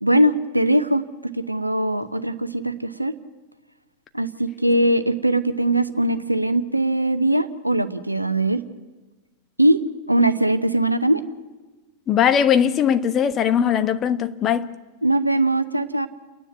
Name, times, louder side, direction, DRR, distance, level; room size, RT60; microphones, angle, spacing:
voice 1, 0.0-3.1 4.1-8.6 9.6-9.8 10.1-11.2 15.0-16.1, right 1 dB, 85° right, 0.9 m, -21 dB
voice 2, 12.1-14.7, left 8 dB, 30° left, 1.0 m, -20 dB
29.5 x 10.0 x 9.4 m
figure-of-eight pair, 90°, 0 cm